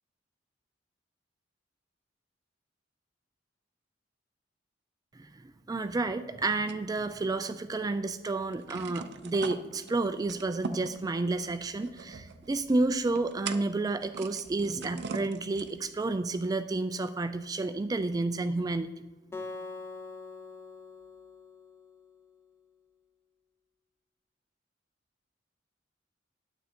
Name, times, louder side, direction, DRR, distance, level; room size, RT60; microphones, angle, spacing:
voice 1, 5.2-18.9, right 3 dB, 20° right, 9 dB, 0.3 m, -31 dB
sound 1, 6.7-7.8 8.1-8.2 8.5-16.0, right 4 dB, 65° right, 0.6 m, -42 dB
Acoustic guitar, 19.3-22.6, left 3 dB, 15° left, 0.8 m, -44 dB
9.4 x 7.9 x 4.4 m, 1.3 s
head